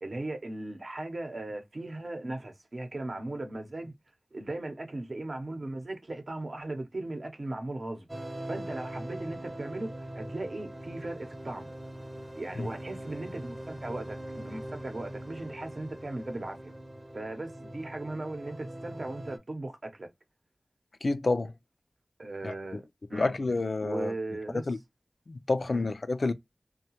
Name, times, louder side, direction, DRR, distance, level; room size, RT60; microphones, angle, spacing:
voice 1, 0.0-3.9 4.3-8.1 8.5-11.7 12.4-16.6 17.1-20.1 22.2-22.8 23.1-23.3 23.8-24.6 25.7-25.8, right 2 dB, 65° right, 0.7 m, -37 dB
sound 1, 8.1-19.4, right 1 dB, 25° right, 0.6 m, -42 dB
voice 2, 21.0-21.5 22.4-22.5 23.1-24.1 24.5-24.8 25.3-26.3, left 3 dB, 70° left, 0.3 m, -29 dB
2.6 x 2.2 x 2.8 m
wide cardioid pair, 55°, 0 cm